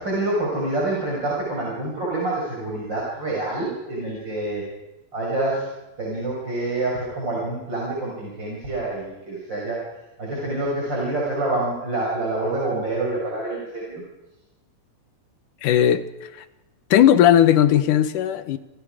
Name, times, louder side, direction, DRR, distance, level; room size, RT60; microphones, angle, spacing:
voice 1, 0.0-4.6 5.1-5.7 6.0-9.8 10.2-14.0, right 2 dB, 30° right, -4 dB, 6.2 m, -27 dB
voice 2, 15.6-16.4 16.9-18.6, left 10 dB, 70° left, 11 dB, 2.5 m, -17 dB
29.0 x 28.0 x 5.0 m, 0.99 s
omnidirectional pair, 4.0 m